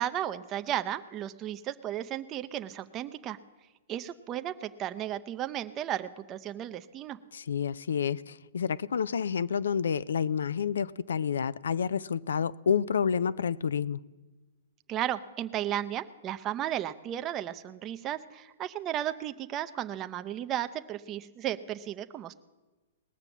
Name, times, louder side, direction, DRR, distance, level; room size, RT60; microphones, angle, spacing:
voice 1, 0.0-3.4 3.9-7.2 14.9-22.3, right 11 dB, 25° right, 0.6 m, -34 dB
voice 2, 7.3-14.0, left 7 dB, 85° left, 0.3 m, -29 dB
19.0 x 6.7 x 7.2 m
hypercardioid pair, 135°, 0 cm